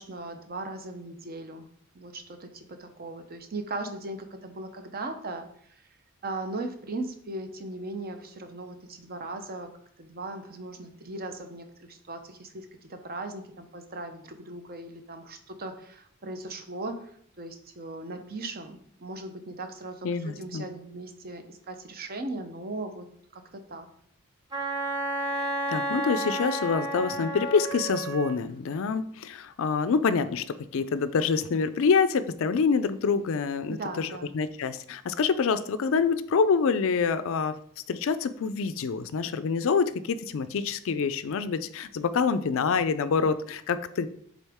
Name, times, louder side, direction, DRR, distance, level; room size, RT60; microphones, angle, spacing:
voice 1, 0.0-1.7 1.9-5.8 6.2-9.7 10.0-17.1 17.4-23.1 23.3-23.9 33.7-34.4, right 2 dB, 45° right, 7 dB, 0.7 m, -38 dB
voice 2, 20.0-20.6 25.7-34.1 34.3-37.6 37.9-44.1, left 5 dB, 65° left, 12 dB, 0.4 m, -26 dB
Wind instrument woodwind instrument, 24.5-28.4, right 1 dB, 20° right, 1.0 m, -31 dB
7.2 x 3.8 x 3.5 m, 0.64 s
head